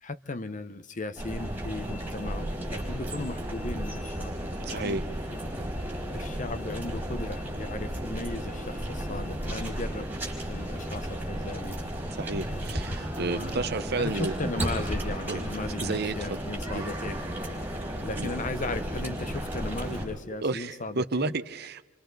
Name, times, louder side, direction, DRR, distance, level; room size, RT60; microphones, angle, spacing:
voice 1, 0.0-4.3 4.7-5.0 6.1-10.1 10.5-11.8 13.0-17.2 18.0-21.3, left 2 dB, 40° left, 0.8 m, -36 dB
sound 1, 1.2-20.1, right 1 dB, 10° right, 4.9 m, -34 dB
voice 2, 4.6-5.0 12.2-14.3 15.3-15.4 15.8-16.1 16.7-16.9 18.2-18.3 20.4-21.9, right 3 dB, 50° right, 0.8 m, -31 dB
28.5 x 26.0 x 4.0 m
head